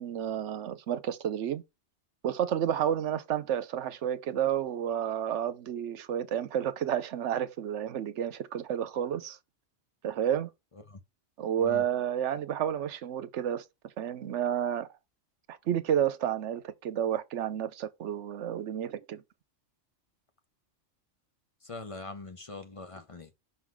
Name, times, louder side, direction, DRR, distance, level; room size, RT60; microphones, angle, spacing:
voice 1, 0.0-1.6 2.2-9.4 10.0-10.5 11.4-14.9 15.5-19.2, right 9 dB, 75° right, 1.0 m, -31 dB
voice 2, 21.6-23.4, left 3 dB, 35° left, 0.7 m, -43 dB
6.0 x 3.8 x 4.7 m
omnidirectional pair, 1.2 m